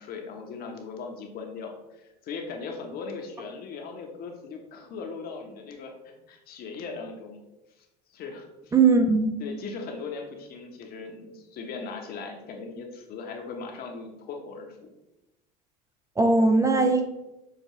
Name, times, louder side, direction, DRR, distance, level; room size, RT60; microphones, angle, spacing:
voice 1, 0.0-5.9 6.3-7.4 7.8-7.9 8.1-8.8 9.4-14.8, left 4 dB, 50° left, 2 dB, 0.9 m, -39 dB
voice 2, 8.7-9.3 16.2-17.0, right 3 dB, 15° right, 5 dB, 0.4 m, -19 dB
6.6 x 2.3 x 3.0 m, 0.97 s
hypercardioid pair, 80°, 20 cm